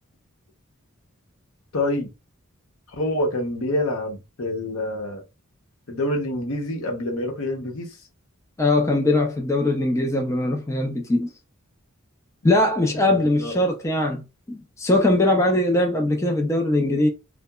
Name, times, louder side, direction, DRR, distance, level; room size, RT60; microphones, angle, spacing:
voice 1, 1.7-2.1 2.9-5.2 5.9-7.9 12.8-13.6, left 1 dB, 80° left, 0.8 m, -27 dB
voice 2, 8.6-11.3 12.4-14.2 14.5-17.1, left 1 dB, 15° left, 0.3 m, -21 dB
2.8 x 2.1 x 2.2 m
head